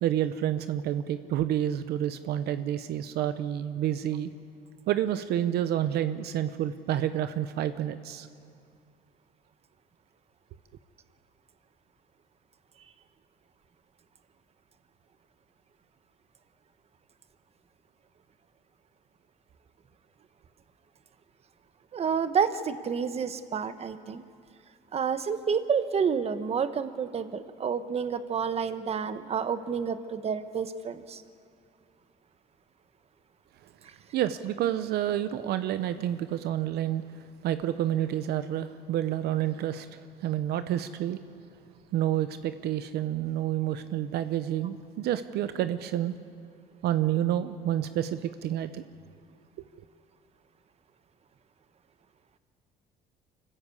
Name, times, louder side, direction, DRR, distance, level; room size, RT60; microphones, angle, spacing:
voice 1, 0.0-4.3 4.9-8.3 34.1-37.1 37.4-41.2 41.9-46.1 46.8-48.8, right 11 dB, 75° right, 11 dB, 0.8 m, -29 dB
voice 2, 21.9-24.2 24.9-31.2, right 6 dB, 40° right, 11 dB, 1.0 m, -29 dB
25.5 x 14.5 x 8.4 m, 2.3 s
cardioid pair, 110°, 17 cm